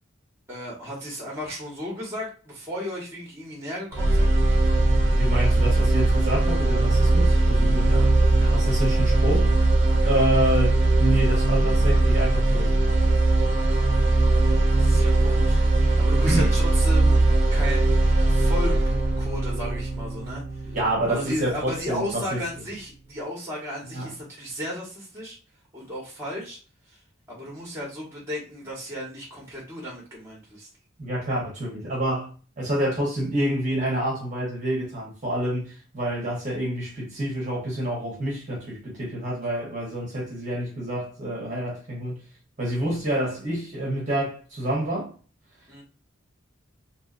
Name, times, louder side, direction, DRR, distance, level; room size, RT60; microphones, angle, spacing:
voice 1, 0.5-4.3 7.9-8.1 8.4-8.6 10.0-10.2 14.2-17.9 18.3-20.8 21.1-25.4 25.7-26.6 26.9-27.0 27.3-30.7 45.7-45.8, equal, 15° right, 1.1 m, -35 dB
sound 1, 3.9-21.9, right 2 dB, 55° right, 0.6 m, -20 dB
voice 2, 5.1-8.0 8.5-9.5 10.0-12.8 16.2-16.5 20.7-22.4 23.9-24.1 31.0-42.2 42.6-45.1, right 1 dB, 35° right, 0.9 m, -28 dB
2.8 x 2.6 x 2.5 m
head